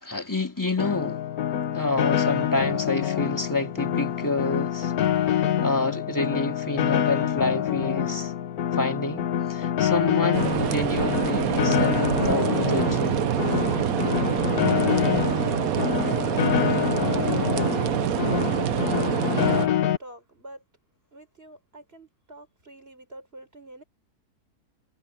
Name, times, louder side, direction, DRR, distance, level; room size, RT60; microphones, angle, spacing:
voice 1, 0.0-1.2 1.7-4.9 5.3-8.3 8.7-13.3, left 2 dB, 10° left, 2.7 m, -28 dB
Piano, 0.8-20.0, left 10 dB, 70° left, 1.5 m, -26 dB
sound 1, 10.3-19.7, right 10 dB, 65° right, 1.2 m, -25 dB
voice 2, 15.7-18.4 18.9-20.6 21.1-23.8, right 1 dB, 40° right, 6.3 m, -46 dB
omnidirectional pair, 1.6 m